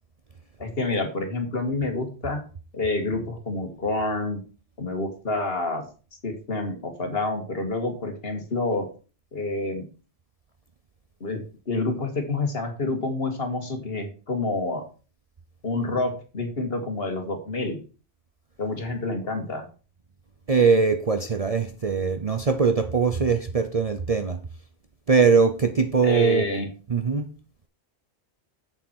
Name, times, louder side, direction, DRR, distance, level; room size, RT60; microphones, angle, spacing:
voice 1, 0.6-2.4 2.7-4.4 4.8-5.9 6.2-8.9 9.3-9.8 11.2-11.4 11.7-14.8 15.6-17.8 18.6-19.7 26.0-26.7, left 2 dB, 55° left, 2.1 m, -28 dB
voice 2, 20.5-24.4 25.1-26.5 26.9-27.3, right 5 dB, 40° right, 0.7 m, -21 dB
7.9 x 7.2 x 4.5 m
omnidirectional pair, 1.2 m